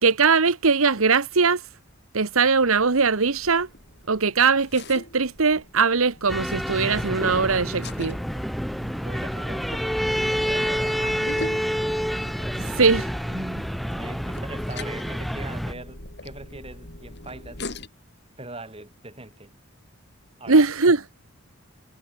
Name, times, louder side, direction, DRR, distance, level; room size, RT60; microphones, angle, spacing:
voice 1, 0.0-1.6 2.1-3.7 4.1-8.2 12.6-13.1 20.5-21.0, right 4 dB, 80° right, 1.2 m, -20 dB
sound 1, 2.6-17.9, left 2 dB, 50° left, 5.0 m, -42 dB
sound 2, 6.3-15.7, equal, ahead, 1.6 m, -28 dB
voice 2, 9.0-9.9 10.4-11.6 13.3-17.8 18.4-19.5 20.4-20.7, right 2 dB, 25° right, 4.0 m, -40 dB
head